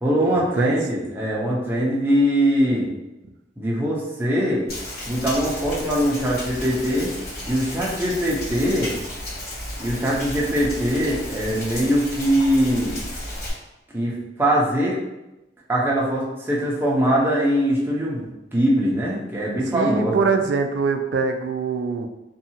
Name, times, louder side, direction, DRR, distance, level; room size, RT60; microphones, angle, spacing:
voice 1, 0.0-2.9 3.6-4.7 5.1-7.1 7.5-8.9 9.8-13.0 13.9-14.1 14.4-15.0 15.7-20.3, equal, 15° right, -5 dB, 0.6 m, -22 dB
Rain, 4.7-13.5, left 1 dB, 60° left, 1.4 m, -33 dB
voice 2, 19.4-22.1, right 4 dB, 75° right, 6 dB, 0.3 m, -23 dB
2.7 x 2.3 x 2.7 m, 0.98 s
head